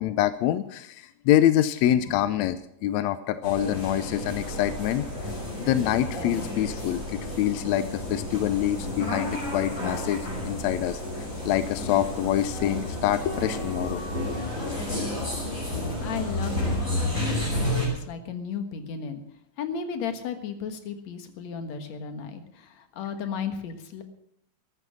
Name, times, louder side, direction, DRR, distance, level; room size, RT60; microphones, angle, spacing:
voice 1, 0.0-5.0 5.6-10.2 10.5-14.0 14.9-15.0, left 12 dB, 80° left, 13 dB, 1.6 m, -25 dB
sound 1, 3.4-17.9, left 1 dB, 20° left, 6.5 m, -31 dB
voice 2, 15.8-19.2 19.6-24.0, left 6 dB, 60° left, 7 dB, 2.5 m, -35 dB
14.0 x 13.0 x 6.1 m, 0.73 s
omnidirectional pair, 3.8 m